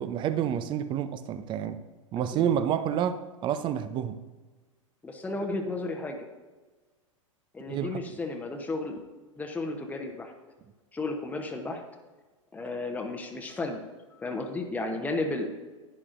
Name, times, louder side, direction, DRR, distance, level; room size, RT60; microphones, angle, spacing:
voice 1, 0.0-1.8 2.1-4.2 7.7-8.0, right 9 dB, 30° right, 0.6 m, -29 dB
voice 2, 2.3-2.7 5.0-6.3 7.5-9.0 9.4-10.3 10.9-11.8 12.5-13.8 14.2-15.5, left 2 dB, 10° left, 1.0 m, -33 dB
11.0 x 9.8 x 2.6 m
figure-of-eight pair, 95°, 17 cm